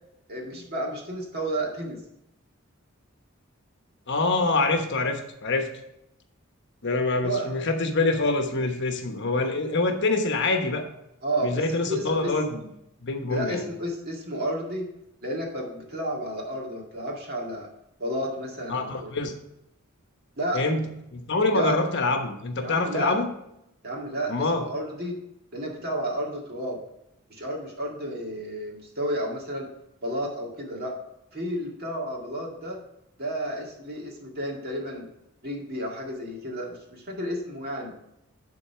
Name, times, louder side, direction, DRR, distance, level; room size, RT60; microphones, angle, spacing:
voice 1, 0.3-2.0 7.2-7.5 11.2-12.3 13.3-14.9 15.2-17.7 18.0-19.1 20.4-20.6 21.5-21.7 22.6-23.1 23.8-25.2 25.5-26.8 27.3-29.7 30.0-30.9 31.3-32.8 33.2-35.1 35.4-37.9, right 1 dB, 50° right, -1 dB, 2.1 m, -31 dB
voice 2, 4.1-5.7 6.8-10.8 11.4-12.7 13.0-13.6 18.7-19.3 20.5-20.8 21.1-23.3 24.3-24.6, left 3 dB, 55° left, 5 dB, 1.1 m, -25 dB
10.5 x 3.9 x 5.7 m, 0.82 s
head